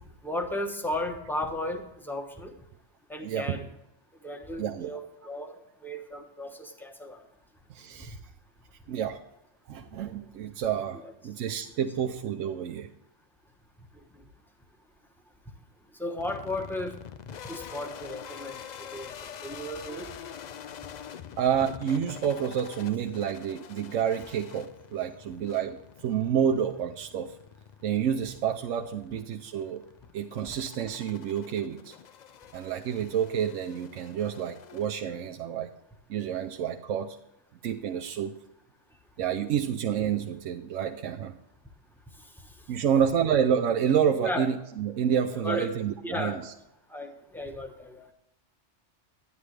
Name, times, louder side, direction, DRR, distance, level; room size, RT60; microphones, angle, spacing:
voice 1, 0.2-2.5 3.1-3.7 4.2-5.6 5.8-7.2 10.9-11.1 16.0-16.9 17.5-19.1 19.4-20.1 42.8-43.0 44.2-44.5 45.3-45.7 46.0-46.4 46.9-48.1, left 1 dB, ahead, 4 dB, 0.9 m, -35 dB
voice 2, 3.2-3.6 4.6-4.9 7.7-8.2 8.9-9.2 9.7-12.9 21.4-25.8 26.0-27.3 27.8-29.8 30.1-31.9 32.5-35.7 36.1-37.2 37.6-38.4 39.2-41.4 42.7-46.5, right 8 dB, 85° right, 4 dB, 1.0 m, -29 dB
sound 1, 16.2-35.4, left 8 dB, 65° left, 0.4 m, -46 dB
11.0 x 9.8 x 3.3 m, 0.88 s
omnidirectional pair, 1.3 m